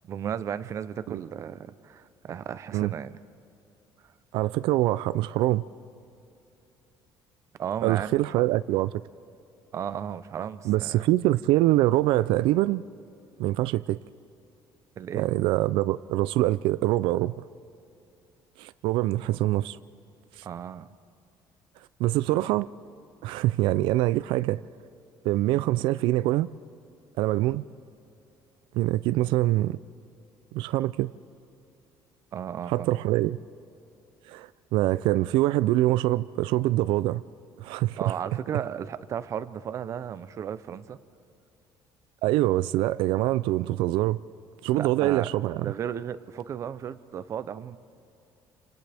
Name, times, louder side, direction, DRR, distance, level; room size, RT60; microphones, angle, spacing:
voice 1, 0.0-3.2 7.6-8.1 9.7-11.1 15.0-15.3 20.4-20.9 32.3-32.9 38.0-41.0 44.7-45.3 45.5-47.8, right 8 dB, 35° right, 14 dB, 0.6 m, -34 dB
voice 2, 4.3-5.6 7.8-9.0 10.7-12.8 13.4-14.0 15.1-17.3 18.6-19.8 20.4-20.5 22.0-22.7 23.2-24.6 25.2-26.5 27.2-27.6 28.7-29.8 30.5-31.1 32.7-33.4 34.3-37.2 37.6-38.1 42.2-44.2 44.6-45.7, right 16 dB, 85° right, 15 dB, 0.4 m, -24 dB
30.0 x 26.0 x 3.5 m, 2.8 s
cardioid pair, 170°, 8 cm